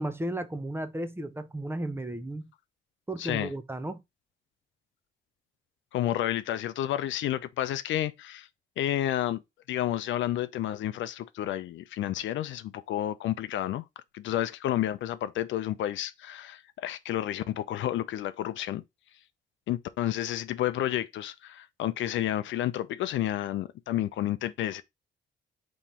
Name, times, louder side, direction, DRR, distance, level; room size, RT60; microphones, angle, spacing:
voice 1, 0.0-2.5 3.1-4.0, right 1 dB, 10° right, 0.6 m, -34 dB
voice 2, 3.2-3.5 5.9-8.5 8.8-9.4 9.7-13.8 14.1-18.8 19.7-24.8, left 12 dB, 70° left, 0.5 m, -30 dB
3.8 x 3.1 x 4.2 m
cardioid pair, 90°, 20 cm